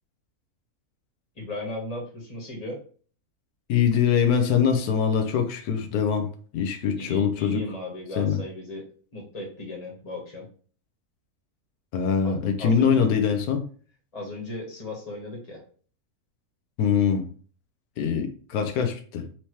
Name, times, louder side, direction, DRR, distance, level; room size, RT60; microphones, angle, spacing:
voice 1, 1.3-2.8 7.0-8.9 9.1-10.5 12.2-13.0 14.1-15.6, left 1 dB, 25° left, 1.4 m, -36 dB
voice 2, 3.7-6.3 6.5-7.6 8.2-8.4 11.9-13.6 16.8-17.2 18.0-19.2, left 7 dB, 85° left, 1.2 m, -23 dB
4.6 x 2.8 x 3.1 m
omnidirectional pair, 1.6 m